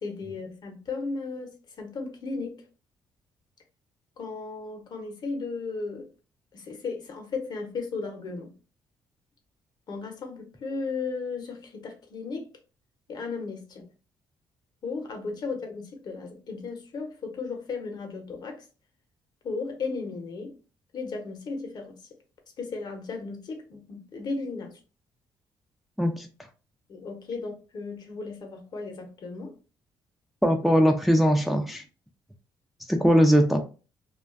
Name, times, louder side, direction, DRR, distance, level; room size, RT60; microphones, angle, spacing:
voice 1, 0.0-2.6 4.2-6.1 6.5-8.5 9.9-12.5 13.1-13.9 14.8-18.6 19.4-20.5 20.9-22.0 22.6-24.7 26.9-29.5, left 4 dB, 55° left, 0.7 m, -35 dB
voice 2, 30.4-31.8 32.9-33.6, equal, ahead, 0.4 m, -20 dB
2.4 x 2.2 x 2.4 m
cardioid pair, 85°, 9 cm